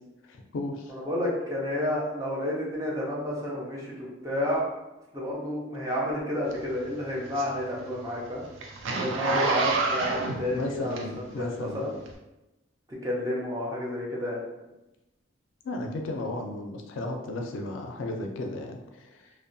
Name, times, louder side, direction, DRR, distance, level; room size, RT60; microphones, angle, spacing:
voice 1, 0.3-1.0 10.5-11.9 15.6-19.3, left 2 dB, 80° left, 3 dB, 0.4 m, -34 dB
voice 2, 0.9-4.7 5.1-8.4 8.9-11.0 11.4-11.9 13.0-14.4, left 1 dB, 15° right, -4 dB, 0.5 m, -30 dB
Zipper (clothing), 6.5-11.4 12.0-12.1, right 3 dB, 80° right, 0.4 m, -29 dB
2.7 x 2.1 x 2.6 m, 0.98 s
head